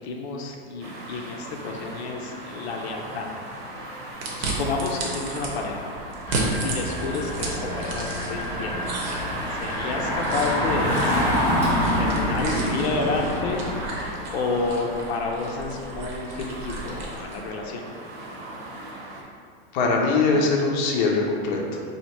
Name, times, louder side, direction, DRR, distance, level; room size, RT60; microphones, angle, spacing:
voice 1, 0.0-3.3 3.8-4.0 4.4-5.9 6.6-8.9 9.5-11.3 12.0-17.9, left 3 dB, 90° left, 1 dB, 0.6 m, -30 dB
sound 1, 0.8-19.2, right 1 dB, 70° right, 1.0 m, -38 dB
sound 2, 4.2-5.5 6.1-8.5 8.8-17.4, right 2 dB, 45° right, 0.8 m, -34 dB
Engine, 6.2-14.1, equal, 10° right, 0.8 m, -26 dB
voice 2, 19.7-21.8, left 3 dB, 45° left, -1 dB, 0.6 m, -22 dB
2.9 x 2.7 x 4.3 m, 2.2 s
supercardioid pair, 165°, 31 cm